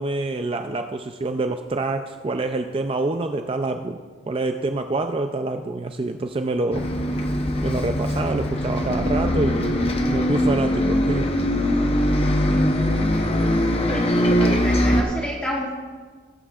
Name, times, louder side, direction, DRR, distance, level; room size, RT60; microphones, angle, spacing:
voice 1, 0.0-4.0 4.3-6.9 7.6-11.3, right 2 dB, 30° right, 6 dB, 0.4 m, -26 dB
Bus, 6.7-15.0, equal, 30° left, 0.8 m, -21 dB
voice 2, 14.4-15.8, equal, 5° left, -4 dB, 1.1 m, -30 dB
20.0 x 9.4 x 2.4 m, 1.5 s
head